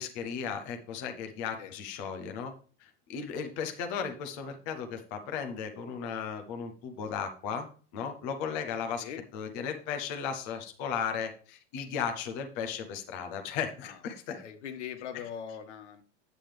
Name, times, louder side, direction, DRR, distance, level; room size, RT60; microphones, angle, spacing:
voice 1, 0.0-2.5 2.8-7.7 7.9-9.0 9.3-14.4, left 7 dB, 15° left, 5 dB, 0.3 m, -35 dB
voice 2, 14.3-16.0, left 8 dB, 85° left, 7 dB, 1.5 m, -41 dB
8.8 x 7.5 x 3.2 m, 0.40 s
supercardioid pair, 175°, 35 cm